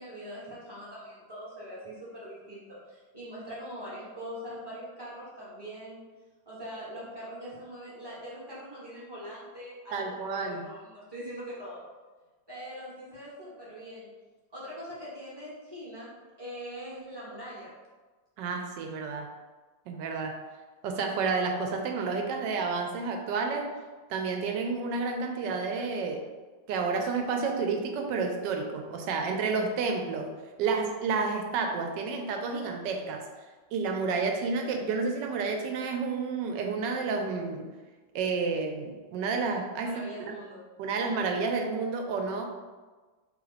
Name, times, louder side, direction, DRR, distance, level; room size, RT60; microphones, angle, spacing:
voice 1, 0.0-6.0 6.4-11.8 12.5-14.1 14.5-17.7 39.8-40.6, equal, 20° right, -7 dB, 0.8 m, -42 dB
voice 2, 9.9-10.6 18.4-19.3 19.9-20.4 20.8-23.7 24.1-26.3 26.7-30.3 30.6-33.3 33.7-37.7 38.1-40.0 40.3-40.4 40.8-42.5, right 4 dB, 75° right, 3 dB, 1.2 m, -30 dB
3.2 x 3.0 x 3.9 m, 1.3 s
omnidirectional pair, 2.0 m